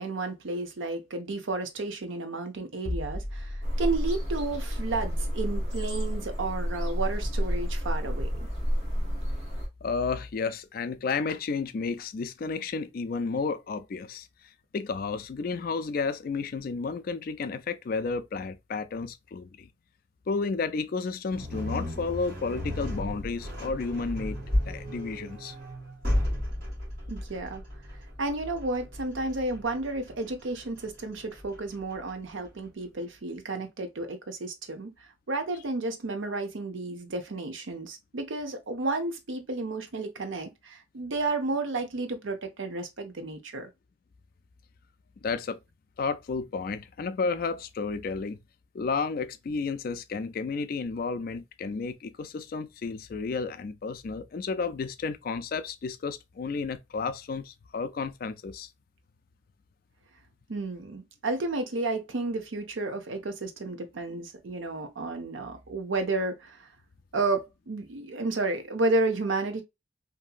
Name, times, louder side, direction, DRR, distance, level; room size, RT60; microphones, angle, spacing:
voice 1, 0.0-8.5 27.1-27.6 28.2-34.9 35.3-43.7 60.5-66.7 67.1-69.6, right 3 dB, 80° right, 0.7 m, -32 dB
sound 1, 2.9-8.6 8.8-9.1, left 1 dB, 20° left, 0.7 m, -39 dB
sound 2, 3.6-9.7, equal, 35° right, 1.0 m, -30 dB
voice 2, 9.8-14.3 14.7-19.7 20.3-24.4 24.7-25.6 45.2-45.6 46.0-48.4 48.7-58.7, left 4 dB, 45° left, 0.3 m, -32 dB
sound 3, 21.3-32.5, left 1 dB, 50° right, 1.6 m, -34 dB
2.8 x 2.6 x 2.3 m
head